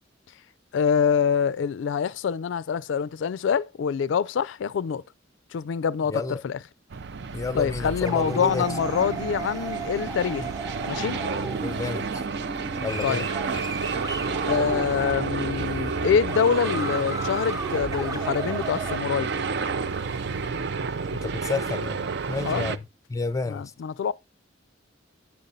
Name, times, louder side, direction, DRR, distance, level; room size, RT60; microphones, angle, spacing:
voice 1, 0.7-5.0 5.5-6.6 7.5-10.5 10.9-11.2 13.0-13.2 14.5-19.3 22.4-22.7 23.5-24.1, left 7 dB, 80° left, 0.3 m, -25 dB
voice 2, 6.1-6.4 7.3-8.7 11.6-12.2 12.8-13.3 21.1-22.8 23.1-23.7, left 3 dB, 20° left, 0.4 m, -30 dB
sound 1, 6.9-22.8, right 4 dB, 65° right, 0.5 m, -30 dB
sound 2, 7.3-19.0, right 2 dB, 20° right, 0.7 m, -35 dB
9.8 x 5.4 x 3.9 m
head